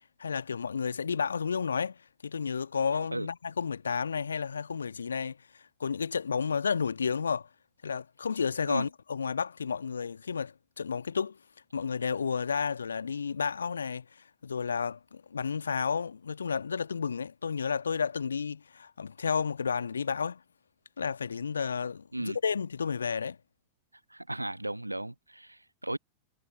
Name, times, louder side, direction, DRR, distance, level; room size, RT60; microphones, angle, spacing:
voice 1, 0.2-5.4 5.8-7.5 7.8-11.4 11.7-14.0 14.4-20.4 21.0-23.4, left 6 dB, 70° left, 1.4 m, -31 dB
voice 2, 24.1-26.0, right 1 dB, 85° right, 1.2 m, -35 dB
figure-of-eight pair, 90°, 0 cm